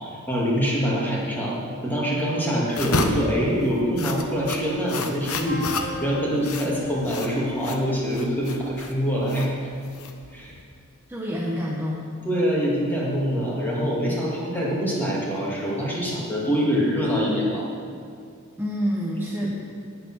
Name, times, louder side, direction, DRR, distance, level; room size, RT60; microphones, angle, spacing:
voice 1, 0.0-1.5 1.8-9.5 10.3-10.5 12.2-17.7, equal, 10° left, -5 dB, 2.4 m, -25 dB
sound 1, 2.7-10.6, left 3 dB, 75° left, 0.9 m, -31 dB
Wind instrument woodwind instrument, 5.4-8.3, left 3 dB, 40° left, 1.2 m, -37 dB
voice 2, 11.1-12.0 18.6-19.5, equal, 10° right, -5 dB, 1.0 m, -27 dB
10.0 x 8.4 x 6.3 m, 2.3 s
head